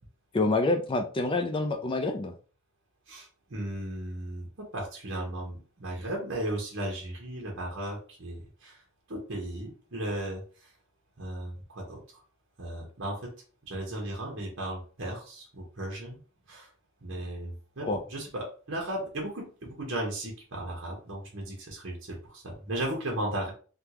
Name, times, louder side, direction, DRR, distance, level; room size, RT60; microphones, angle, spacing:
voice 1, 0.3-2.3 17.8-18.0, left 2 dB, 25° left, 6 dB, 0.4 m, -27 dB
voice 2, 3.1-8.8 9.1-10.7 11.2-12.2 12.6-13.3 13.6-16.2 16.5-16.7 17.0-23.5, right 1 dB, 60° right, -1 dB, 1.0 m, -36 dB
3.5 x 2.3 x 2.9 m, 0.39 s
head